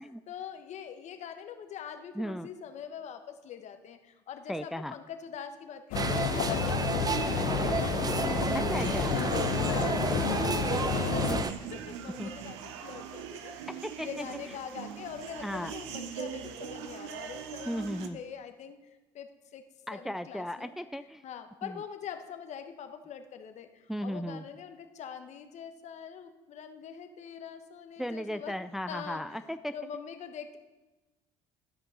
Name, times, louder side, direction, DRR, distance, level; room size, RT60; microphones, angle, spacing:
voice 1, 0.0-8.5 9.0-19.7 19.9-20.7 21.2-28.6 28.9-30.6, left 8 dB, 55° left, 7 dB, 1.1 m, -44 dB
voice 2, 2.2-2.5 4.5-4.9 8.5-9.2 12.2-12.3 13.7-14.3 15.4-15.7 17.7-18.2 19.9-21.2 21.6-21.8 23.9-24.5 28.0-29.7, equal, ahead, 11 dB, 0.3 m, -36 dB
sound 1, 5.9-11.4, left 13 dB, 70° left, 0.5 m, -31 dB
sound 2, 5.9-11.5, right 5 dB, 25° right, 0.7 m, -30 dB
sound 3, 8.8-18.1, right 8 dB, 85° right, 0.8 m, -41 dB
13.0 x 5.2 x 6.8 m, 1.2 s
supercardioid pair, 75°, 14 cm